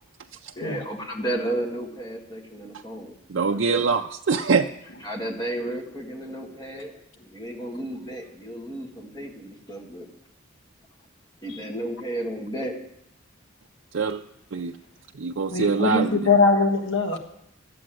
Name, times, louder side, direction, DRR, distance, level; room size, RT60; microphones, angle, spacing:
voice 1, 0.6-3.2 3.5-3.9 5.0-10.1 11.4-12.7, right 1 dB, 20° left, 0 dB, 1.9 m, -33 dB
voice 2, 3.3-4.7 13.9-14.2 14.5-14.7 15.1-16.2, right 5 dB, 70° right, 3 dB, 0.5 m, -23 dB
voice 3, 15.5-17.2, left 3 dB, 70° left, 2 dB, 1.5 m, -21 dB
12.5 x 8.5 x 7.7 m, 0.77 s
head